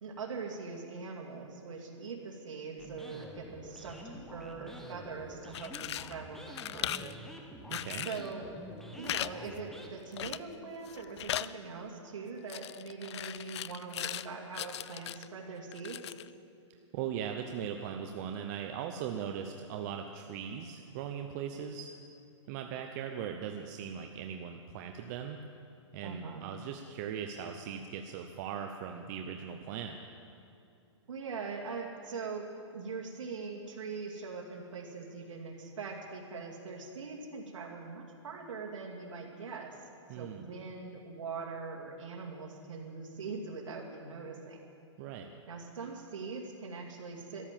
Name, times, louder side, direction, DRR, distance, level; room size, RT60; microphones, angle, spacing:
voice 1, 0.0-7.1 8.0-8.4 9.0-16.0 26.0-26.5 31.1-39.8 40.1-44.6 45.5-47.5, right 4 dB, 85° right, -1 dB, 2.4 m, -42 dB
sound 1, 2.8-9.9, left 1 dB, ahead, 1.0 m, -48 dB
sound 2, 5.4-6.1 6.5-7.1 7.7-8.3 9.0-9.3 9.6-9.7 10.2-10.6 10.9-11.5 12.5-14.3 14.5-15.3 15.7-16.3, left 12 dB, 65° left, 0.4 m, -38 dB
voice 2, 7.7-8.1 16.9-21.9 22.5-25.4 25.9-30.0 40.1-40.5 45.0-45.3, right 8 dB, 35° right, 4 dB, 0.7 m, -39 dB
13.5 x 12.0 x 7.5 m, 2.5 s
hypercardioid pair, 155°, 16 cm